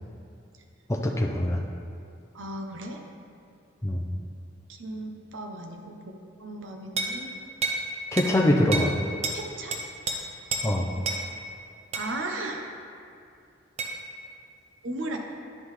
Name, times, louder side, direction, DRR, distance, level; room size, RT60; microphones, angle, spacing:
voice 1, 0.9-1.6 3.8-4.1 8.1-9.0 10.6-10.9, left 1 dB, 15° left, 0 dB, 0.5 m, -23 dB
voice 2, 2.3-3.0 4.7-7.3 9.3-9.7 11.9-12.6 14.8-15.2, right 2 dB, 75° right, 2 dB, 0.7 m, -36 dB
sound 1, 7.0-7.2 7.6-7.8 8.2-8.3 8.7-8.9 9.2-9.4 9.7-10.2 10.5-10.7 11.0-11.2 11.9-12.1 13.8-13.9, right 3 dB, 35° right, 0.6 m, -29 dB
10.0 x 5.6 x 3.2 m, 2.4 s
head